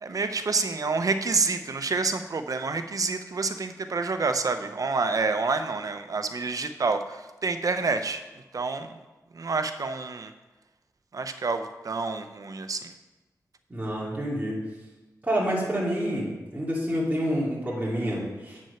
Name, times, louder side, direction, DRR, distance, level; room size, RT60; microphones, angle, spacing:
voice 1, 0.0-8.2 8.5-8.9 9.3-10.3 11.1-12.9, right 4 dB, 60° right, 8 dB, 0.8 m, -28 dB
voice 2, 13.7-14.6 15.2-18.6, equal, 25° right, -6 dB, 2.6 m, -28 dB
8.8 x 6.2 x 5.7 m, 1.1 s
cardioid pair, 60°, 7 cm